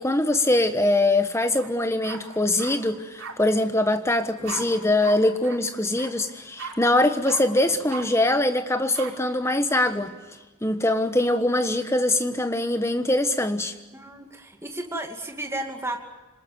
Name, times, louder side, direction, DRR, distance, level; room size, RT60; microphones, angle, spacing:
voice 1, 0.0-10.1 10.6-13.7, left 1 dB, 10° left, 1.3 m, -23 dB
sound 1, 1.5-1.7 2.0-2.7 3.2-3.3 4.4-4.6 5.0-5.2 5.4-5.6 5.9-6.1 6.6-6.7 7.2-7.4 7.9-8.0 8.9-9.1, right 5 dB, 65° right, 4.8 m, -36 dB
sound 2, 4.4-5.2 5.5-5.6 7.6-8.4 9.8-10.4, right 1 dB, 45° right, 3.6 m, -47 dB
voice 2, 13.9-16.0, right 1 dB, 10° right, 2.4 m, -33 dB
27.5 x 20.0 x 9.4 m
head